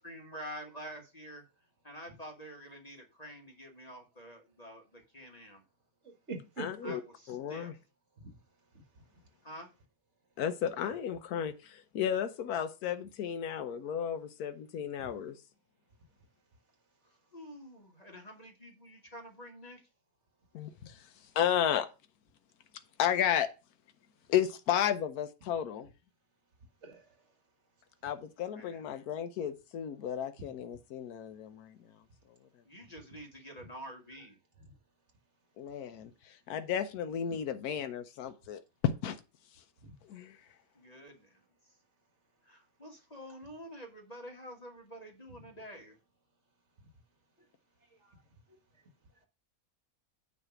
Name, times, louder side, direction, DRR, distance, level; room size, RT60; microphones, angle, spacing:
voice 1, 0.0-1.4 1.8-5.6 6.8-7.7 9.4-9.7 17.0-19.8 28.5-28.8 32.6-34.4 40.7-41.4 42.4-45.9, equal, 30° left, 1.3 m, -48 dB
voice 2, 6.0-6.9 8.2-8.3 15.0-15.1 26.8-27.0 30.4-30.5 39.8-39.9, right 3 dB, 50° right, 1.9 m, -43 dB
voice 3, 6.6-7.0 7.3-7.7 10.4-15.4 20.5-21.1 21.3-21.9 23.0-23.5 24.3-25.9 28.0-31.8 35.6-39.2 40.1-40.4, left 9 dB, 90° left, 1.2 m, -33 dB
9.5 x 3.3 x 5.8 m
omnidirectional pair, 1.5 m